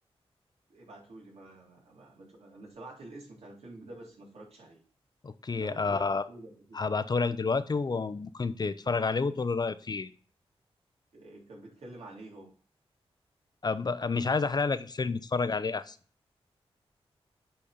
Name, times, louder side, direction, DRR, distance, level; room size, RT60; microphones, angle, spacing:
voice 1, 0.7-4.8 5.5-6.8 11.1-12.5, right 2 dB, 80° right, -3 dB, 3.4 m, -48 dB
voice 2, 5.2-6.2 6.7-10.1 13.6-16.0, left 4 dB, 40° left, 13 dB, 0.6 m, -29 dB
8.5 x 4.3 x 5.1 m, 0.41 s
wide cardioid pair, 85°, 11 cm